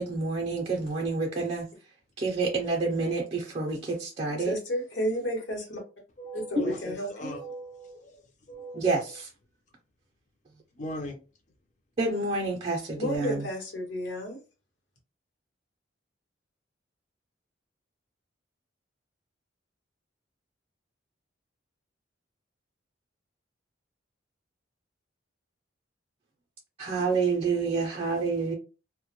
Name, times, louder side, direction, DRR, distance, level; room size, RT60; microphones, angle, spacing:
voice 1, 0.0-1.7 2.2-4.5 6.6-6.7 8.7-9.3 12.0-13.5 26.8-28.5, right 4 dB, 30° right, 0.4 m, -28 dB
voice 2, 4.4-5.8 6.3-7.3 13.0-14.4, equal, 75° left, 1.0 m, -32 dB
voice 3, 6.2-8.2 8.5-9.1 10.7-11.2, equal, 40° left, 0.5 m, -39 dB
2.1 x 2.0 x 2.9 m
head